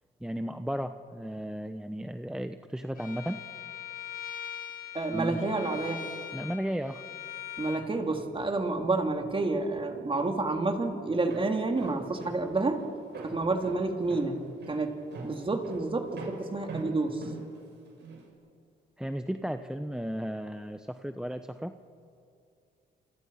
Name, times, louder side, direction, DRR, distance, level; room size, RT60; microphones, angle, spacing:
voice 1, 0.2-3.4 5.1-5.4 6.3-7.0 19.0-21.7, equal, 5° right, 8 dB, 1.0 m, -34 dB
Bowed string instrument, 3.0-7.8, left 10 dB, 45° left, 4.0 m, -41 dB
voice 2, 4.9-6.0 7.6-12.8 13.2-14.4 14.7-15.0 15.2-17.3, right 3 dB, 25° right, 3 dB, 3.5 m, -29 dB
Walk footsteps, 11.1-18.2, right 3 dB, 60° right, 7.9 m, -43 dB
29.5 x 27.5 x 5.9 m, 2.3 s
cardioid pair, 90°, 20 cm